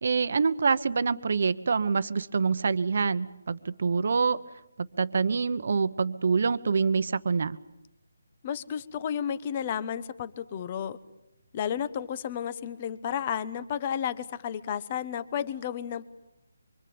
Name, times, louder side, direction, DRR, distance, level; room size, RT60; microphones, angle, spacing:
voice 1, 0.0-4.4 4.8-7.6, right 5 dB, 50° right, 13 dB, 1.1 m, -26 dB
voice 2, 8.4-11.0 11.5-16.1, left 8 dB, 25° left, 15 dB, 1.0 m, -32 dB
25.0 x 24.5 x 8.8 m, 0.90 s
hypercardioid pair, 170°, 0 cm